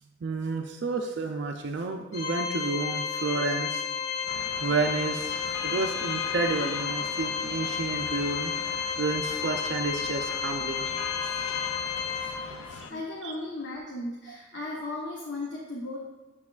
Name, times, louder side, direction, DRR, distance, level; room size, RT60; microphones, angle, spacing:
voice 1, 0.2-3.8 4.6-8.5 9.0-10.9 11.2-11.3 12.4-12.9 13.2-13.3 14.3-14.4, right 3 dB, 60° right, 3 dB, 0.4 m, -31 dB
Organ, 2.1-12.8, left 7 dB, 35° left, 1.2 m, -32 dB
sound 1, 4.3-12.9, left 6 dB, 85° left, 0.4 m, -39 dB
voice 2, 12.9-16.0, left 2 dB, 60° left, -4 dB, 0.9 m, -36 dB
8.3 x 7.2 x 2.4 m, 1.2 s
head